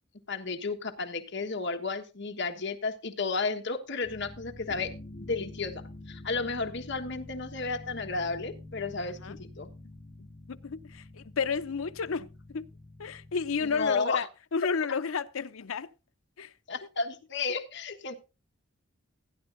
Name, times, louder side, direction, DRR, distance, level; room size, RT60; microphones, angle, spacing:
voice 1, 0.3-4.9 5.2-9.7 13.6-14.2 16.7-18.2, left 4 dB, 60° left, 1.4 m, -33 dB
sound 1, 4.0-13.9, left 2 dB, 35° left, 3.0 m, -47 dB
voice 2, 10.5-12.6 13.0-15.9 16.4-16.5, left 5 dB, 80° left, 0.6 m, -32 dB
16.5 x 10.0 x 2.6 m
head